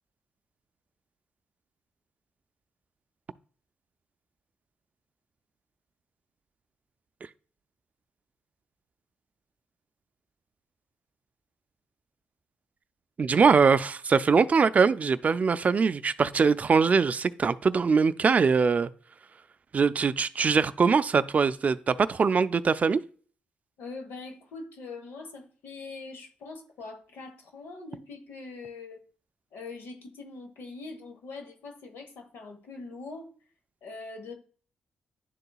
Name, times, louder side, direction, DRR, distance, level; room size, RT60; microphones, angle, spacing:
voice 1, 13.2-18.9 19.7-23.0, right 5 dB, 40° right, 0.3 m, -22 dB
voice 2, 23.8-29.0 29.5-33.3 33.8-34.3, left 3 dB, 80° left, 1.2 m, -42 dB
10.5 x 3.9 x 2.3 m
cardioid pair, 70°, 4 cm